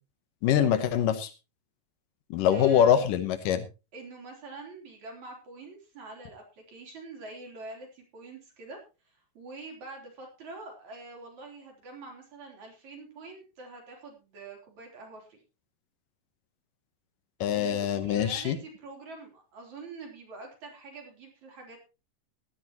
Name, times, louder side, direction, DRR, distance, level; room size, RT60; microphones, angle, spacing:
voice 1, 0.4-1.3 2.3-3.6 17.4-18.6, left 9 dB, 90° left, 10 dB, 2.7 m, -24 dB
voice 2, 2.5-3.1 3.9-8.8 9.1-15.4 17.5-21.8, right 2 dB, 60° right, 1 dB, 5.0 m, -45 dB
17.0 x 12.0 x 3.0 m, 0.30 s
omnidirectional pair, 3.7 m